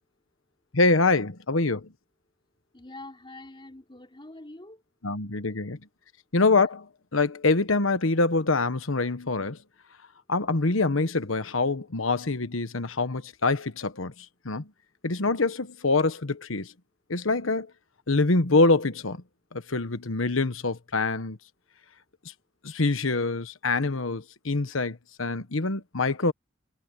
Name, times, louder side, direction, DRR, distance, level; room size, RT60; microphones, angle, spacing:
voice 1, 0.7-1.9 5.0-5.8 6.3-6.9 7.1-9.6 10.3-14.1 14.4-14.7 15.0-16.7 17.1-17.7 18.1-19.2 19.5-21.4 22.6-26.3, left 3 dB, 85° left, 1.3 m, -25 dB
voice 2, 2.7-4.8, left 2 dB, 25° left, 3.4 m, -44 dB
head